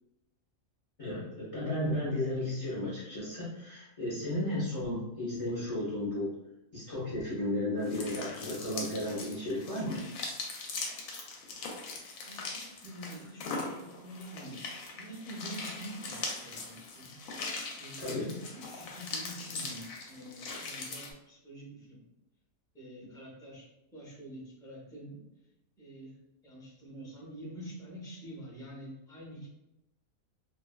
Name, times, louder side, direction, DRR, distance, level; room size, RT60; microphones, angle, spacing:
voice 1, 1.0-6.3 6.7-10.0 18.0-18.3, left 1 dB, 45° left, -8 dB, 0.4 m, -34 dB
sound 1, 7.8-21.1, left 3 dB, 75° left, 1.0 m, -41 dB
voice 2, 12.2-14.6 14.9-17.1 17.8-22.0 22.7-25.2 25.8-26.1 26.4-29.5, right 1 dB, 5° left, -5 dB, 0.6 m, -46 dB
2.6 x 2.3 x 2.2 m, 0.91 s
omnidirectional pair, 1.5 m